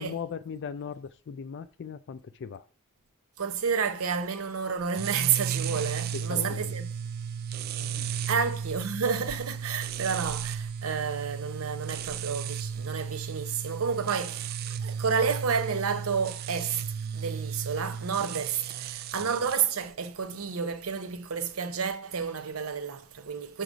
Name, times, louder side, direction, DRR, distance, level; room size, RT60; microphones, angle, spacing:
voice 1, 0.0-2.7 5.7-5.9 6.1-6.8 7.6-8.3 18.2-18.3 19.1-19.3, left 6 dB, 55° left, 0.4 m, -39 dB
voice 2, 3.4-6.9 8.3-14.5 14.8-16.8 17.1-23.6, right 6 dB, 75° right, 0.7 m, -30 dB
sound 1, 4.9-19.6, right 7 dB, 45° right, 0.3 m, -34 dB
6.7 x 3.8 x 5.0 m
head